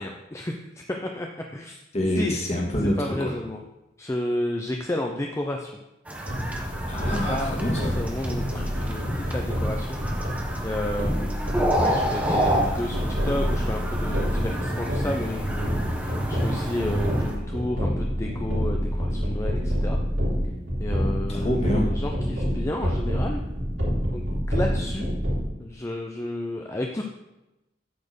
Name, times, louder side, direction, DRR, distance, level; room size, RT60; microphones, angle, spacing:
voice 1, 0.0-1.8 2.1-2.4 2.8-3.6 4.0-5.7 7.3-7.6 8.0-20.0 20.8-23.4 24.1-24.2 24.5-25.1 25.6-27.0, left 1 dB, 15° left, 2 dB, 0.5 m, -32 dB
voice 2, 1.9-3.3 6.9-8.0 21.3-21.9, left 1 dB, 35° left, -2 dB, 1.9 m, -26 dB
sound 1, 6.1-17.3, equal, 10° right, 1.1 m, -30 dB
sound 2, 6.3-25.4, equal, 90° right, 3.2 m, -27 dB
8.6 x 4.3 x 6.7 m, 0.97 s
head